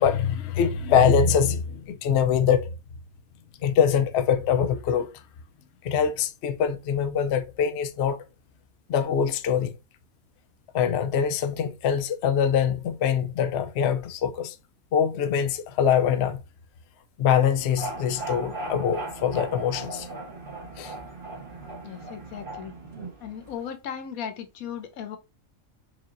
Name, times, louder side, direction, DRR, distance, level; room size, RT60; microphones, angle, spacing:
voice 1, 0.0-2.7 3.6-5.1 5.8-8.2 8.9-9.7 10.7-14.6 14.9-16.4 17.2-20.1 20.8-20.9, left 7 dB, 65° left, 0.7 m, -23 dB
sound 1, 17.5-23.6, right 2 dB, 40° right, 1.7 m, -38 dB
voice 2, 21.8-22.7 23.2-25.2, left 8 dB, 85° left, 1.2 m, -36 dB
4.7 x 2.8 x 2.6 m
omnidirectional pair, 1.4 m